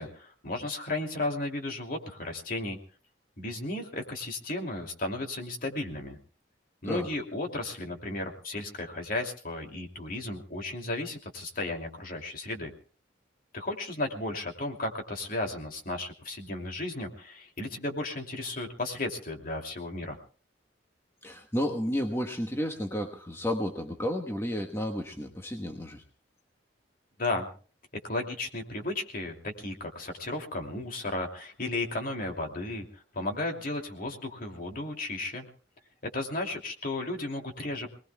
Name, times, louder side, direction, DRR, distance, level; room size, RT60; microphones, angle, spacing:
voice 1, 0.0-2.8 3.4-6.2 6.8-12.7 13.5-20.2 27.2-27.5 28.0-35.5 36.1-37.9, left 2 dB, 50° left, 3 dB, 2.8 m, -34 dB
voice 2, 21.2-26.0, equal, 15° left, 3 dB, 1.2 m, -32 dB
27.5 x 19.5 x 2.3 m, 0.39 s
head